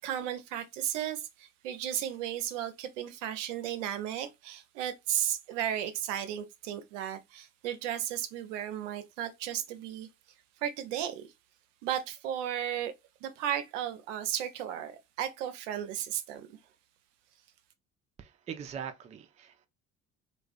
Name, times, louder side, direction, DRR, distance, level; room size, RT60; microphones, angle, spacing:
voice 1, 0.0-10.1 10.6-11.3 11.8-12.9 13.2-16.5, right 10 dB, 70° right, 0.5 m, -34 dB
voice 2, 18.2-19.7, right 8 dB, 20° right, 0.3 m, -42 dB
2.3 x 2.2 x 2.3 m
figure-of-eight pair, 50°, 38 cm